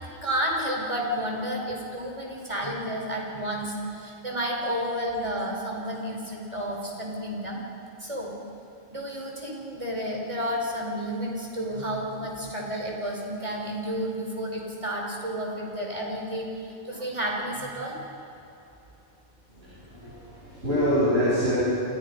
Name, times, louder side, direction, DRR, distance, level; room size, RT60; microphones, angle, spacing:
voice 1, 0.0-7.6 8.0-8.4 8.9-18.0, equal, 25° right, -1 dB, 4.9 m, -31 dB
voice 2, 19.5-21.6, equal, 60° right, -9 dB, 7.9 m, -25 dB
29.5 x 28.0 x 5.5 m, 2.9 s
omnidirectional pair, 1.2 m